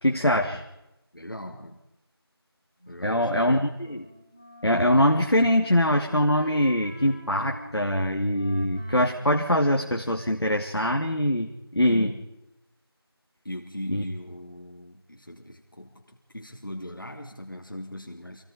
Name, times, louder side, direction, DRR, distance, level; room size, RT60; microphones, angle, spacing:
voice 1, 0.0-0.6 3.0-4.0 4.6-12.1 13.9-14.0, left 1 dB, 75° left, 3 dB, 2.7 m, -23 dB
voice 2, 1.1-1.8 2.9-3.6 11.9-12.3 13.4-18.4, left 1 dB, 55° left, 2 dB, 3.0 m, -39 dB
Wind instrument woodwind instrument, 2.8-10.3, right 1 dB, 15° left, 2.1 m, -47 dB
28.0 x 18.5 x 5.1 m, 0.91 s
figure-of-eight pair, 180°, 13 cm